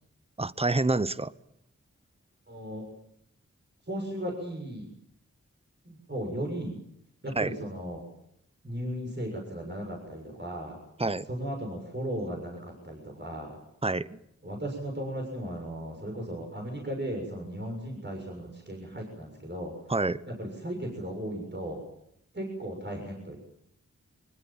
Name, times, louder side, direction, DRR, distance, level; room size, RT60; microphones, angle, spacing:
voice 1, 0.4-1.3 7.4-7.5 11.0-11.3 13.8-14.2 19.9-20.2, right 2 dB, 20° right, 16 dB, 0.9 m, -27 dB
voice 2, 2.5-2.8 3.9-4.9 5.9-6.8 7.2-8.0 8.6-10.8 11.3-13.6 14.4-19.7 20.3-21.8 22.3-23.4, right 1 dB, 35° right, 1 dB, 6.9 m, -36 dB
24.5 x 22.0 x 7.4 m, 0.75 s
wide cardioid pair, 70°, 30 cm